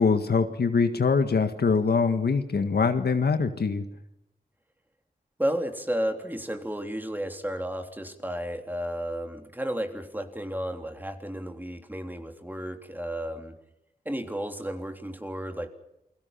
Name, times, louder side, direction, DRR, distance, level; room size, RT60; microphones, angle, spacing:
voice 1, 0.0-3.8, left 5 dB, 70° left, 8 dB, 1.8 m, -23 dB
voice 2, 5.4-13.6 14.0-15.7, equal, 10° right, 5 dB, 3.4 m, -32 dB
29.0 x 22.0 x 5.8 m, 0.87 s
wide cardioid pair, 75°, 17 cm